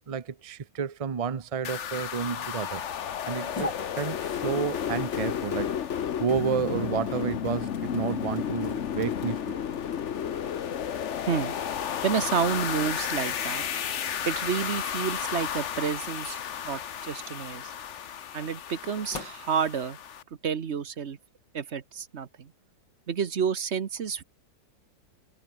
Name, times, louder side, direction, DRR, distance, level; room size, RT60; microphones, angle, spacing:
voice 1, 0.1-2.8 3.3-5.8 6.2-9.6, right 6 dB, 70° right, 0.3 m, -31 dB
sound 1, 1.6-20.2, left 9 dB, 50° left, 1.1 m, -32 dB
sound 2, 6.2-19.9, left 3 dB, 85° left, 5.9 m, -47 dB
voice 2, 12.0-13.6 14.2-16.4 16.6-17.7 18.3-20.0 20.4-21.2 21.5-22.5 23.1-24.2, right 7 dB, 45° right, 1.2 m, -30 dB
omnidirectional pair, 1.9 m